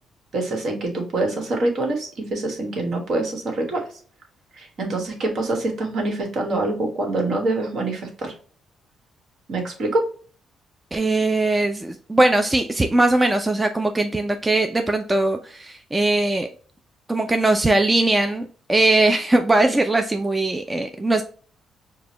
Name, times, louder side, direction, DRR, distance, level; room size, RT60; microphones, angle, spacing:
voice 1, 0.3-3.8 4.6-8.3 9.5-10.0, right 2 dB, 60° right, 3 dB, 1.3 m, -25 dB
voice 2, 10.9-16.5 17.1-21.2, right 2 dB, 15° right, 6 dB, 0.4 m, -20 dB
4.9 x 2.2 x 2.9 m, 0.42 s
cardioid pair, 90°, 0 cm